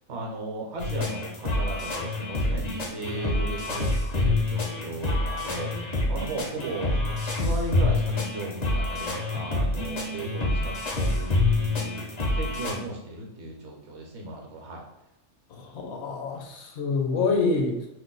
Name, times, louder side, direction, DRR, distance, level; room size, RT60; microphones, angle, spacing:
voice 1, 0.1-14.8, right 2 dB, 65° right, 0 dB, 1.0 m, -36 dB
sound 1, 0.8-12.8, left 2 dB, 50° left, 0.5 m, -27 dB
voice 2, 15.5-17.9, left 4 dB, 70° left, 2 dB, 0.8 m, -27 dB
2.6 x 2.1 x 3.7 m, 0.90 s
omnidirectional pair, 1.3 m